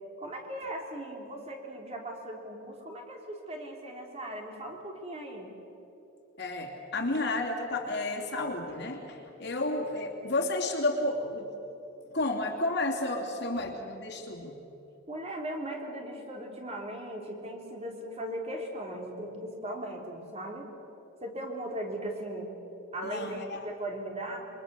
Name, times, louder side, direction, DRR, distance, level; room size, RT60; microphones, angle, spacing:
voice 1, 0.2-5.5 15.1-20.7 21.2-22.5 22.9-24.5, right 1 dB, 30° right, 1 dB, 3.3 m, -38 dB
voice 2, 6.4-11.5 12.1-14.6 23.0-23.7, left 2 dB, 55° left, 1 dB, 3.0 m, -31 dB
27.5 x 23.5 x 6.9 m, 3.0 s
head